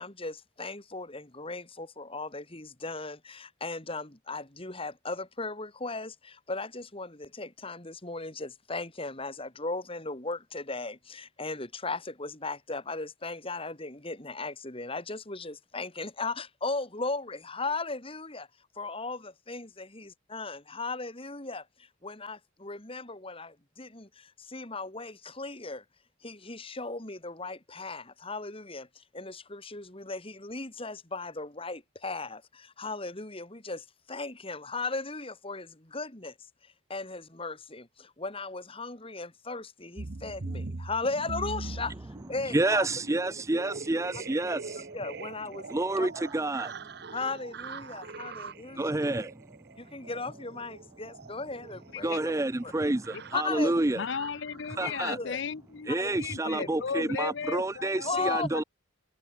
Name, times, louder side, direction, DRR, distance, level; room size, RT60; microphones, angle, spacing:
voice 1, 0.0-18.5 18.7-25.8 26.2-36.3 36.6-42.0 42.3-42.9 44.4-44.6 44.9-46.1 47.1-48.9 49.8-52.3 52.6-52.7 53.3-53.7 54.8-55.4 55.9-56.1 56.5-56.7 58.0-58.5, left 3 dB, 30° left, 3.0 m, -37 dB
sound 1, 40.0-55.3 56.1-56.3 56.6-56.8 57.1-57.3 57.6-57.8, right 3 dB, 55° right, 0.9 m, -43 dB
voice 2, 42.5-44.9 45.7-47.1 48.7-49.6 49.9-50.1 52.0-54.0 54.7-55.2 55.9-58.6, right 2 dB, 15° right, 0.5 m, -29 dB
voice 3, 54.0-58.6, left 6 dB, 60° left, 0.6 m, -35 dB
head